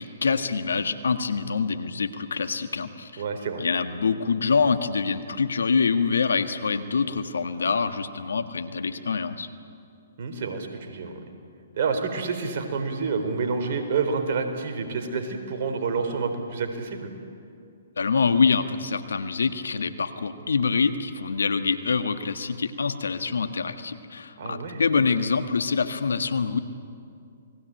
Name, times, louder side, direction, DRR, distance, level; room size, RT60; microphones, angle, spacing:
voice 1, 0.0-3.2 3.6-9.5 18.0-26.6, left 5 dB, 80° left, 10 dB, 1.6 m, -25 dB
voice 2, 3.2-3.6 10.2-11.3 11.8-17.1 24.4-24.8, right 5 dB, 55° right, 6 dB, 4.0 m, -28 dB
28.5 x 20.0 x 9.0 m, 2.4 s
hypercardioid pair, 130°, 0 cm